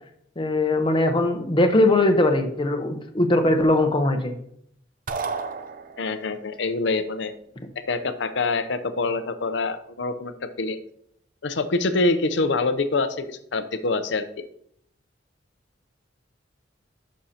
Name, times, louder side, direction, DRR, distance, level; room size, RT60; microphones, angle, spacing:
voice 1, 0.4-4.3, left 1 dB, 25° left, 5 dB, 0.9 m, -20 dB
sound 1, 5.1-6.4, right 5 dB, 50° right, 0.6 m, -32 dB
voice 2, 6.0-7.3 7.9-10.3 10.6-10.8 11.4-14.5, left 3 dB, 70° left, 10 dB, 0.6 m, -25 dB
10.5 x 6.4 x 2.8 m, 0.71 s
head